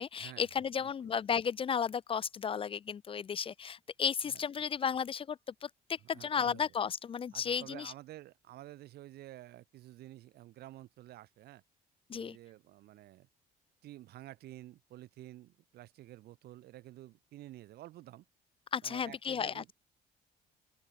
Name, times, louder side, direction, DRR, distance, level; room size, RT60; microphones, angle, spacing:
voice 1, 0.0-7.9 12.1-12.4 18.7-19.6, left 7 dB, 30° left, 0.5 m, -34 dB
voice 2, 0.8-1.1 4.3-4.4 6.0-6.7 7.3-11.6 12.1-13.3 13.8-18.2 18.8-19.7, right 15 dB, 70° right, 1.2 m, -51 dB
open air
cardioid pair, 110°, 17 cm